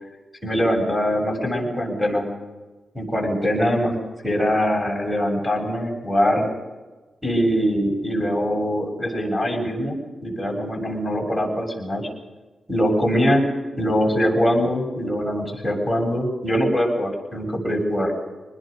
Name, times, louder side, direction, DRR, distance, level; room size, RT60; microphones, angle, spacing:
voice 1, 0.4-2.3 2.9-4.0 4.2-6.5 7.2-12.1 12.7-13.4 13.8-18.1, equal, 5° left, -1 dB, 7.9 m, -22 dB
26.5 x 20.5 x 5.5 m, 1.2 s
wide cardioid pair, 115°, 0 cm